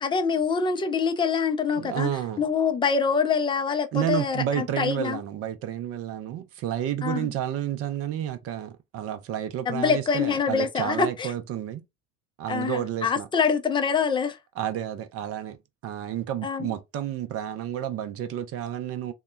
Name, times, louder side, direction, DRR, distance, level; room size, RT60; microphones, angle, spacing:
voice 1, 0.0-2.1 2.4-5.2 7.0-7.3 9.7-11.3 12.5-14.4 16.4-16.7, left 6 dB, 10° left, 0.4 m, -25 dB
voice 2, 1.7-2.4 3.9-11.8 12.4-13.3 14.6-15.6 15.8-19.1, right 11 dB, 35° right, 0.6 m, -30 dB
3.6 x 2.1 x 2.2 m
figure-of-eight pair, 65°, 40 cm